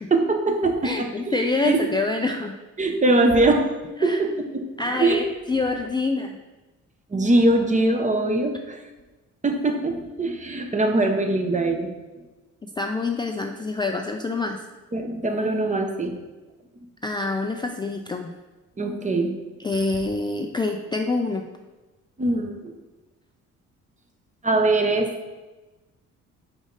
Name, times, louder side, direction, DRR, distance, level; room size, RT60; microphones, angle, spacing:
voice 1, 0.1-1.4 1.6-1.8 2.8-3.7 4.0-5.2 7.1-8.8 9.4-11.9 14.9-16.1 18.8-19.3 22.2-22.7 24.4-25.1, right 2 dB, 25° right, 4 dB, 0.8 m, -22 dB
voice 2, 0.8-2.6 4.0-4.4 4.8-6.4 12.8-14.6 17.0-18.3 19.6-21.5, left 3 dB, 15° left, 3 dB, 0.3 m, -26 dB
5.1 x 4.9 x 4.0 m, 1.1 s
cardioid pair, 90°, 30 cm